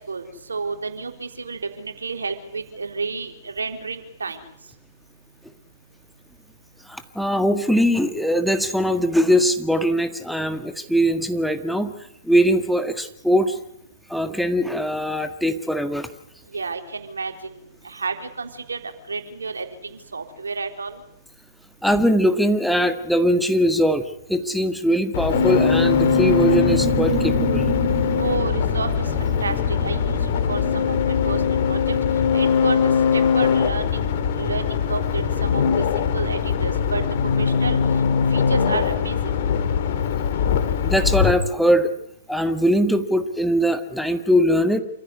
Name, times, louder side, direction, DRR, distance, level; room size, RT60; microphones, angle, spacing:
voice 1, 0.1-4.4 16.5-17.6 17.8-18.8 19.1-21.0 28.2-28.9 29.2-30.2 30.5-32.0 32.3-34.1 34.4-35.6 36.0-37.0 37.4-37.8 38.3-39.2, right 4 dB, 85° right, 5 dB, 3.8 m, -30 dB
voice 2, 6.9-11.9 12.2-13.6 14.1-16.1 21.8-27.7 40.8-41.9 42.3-44.8, equal, ahead, 8 dB, 1.8 m, -21 dB
sound 1, 25.1-41.3, left 7 dB, 55° left, 2.9 m, -21 dB
sound 2, 25.3-31.3, right 9 dB, 25° right, 1.7 m, -30 dB
28.0 x 15.5 x 9.8 m, 0.74 s
hypercardioid pair, 115°, 0 cm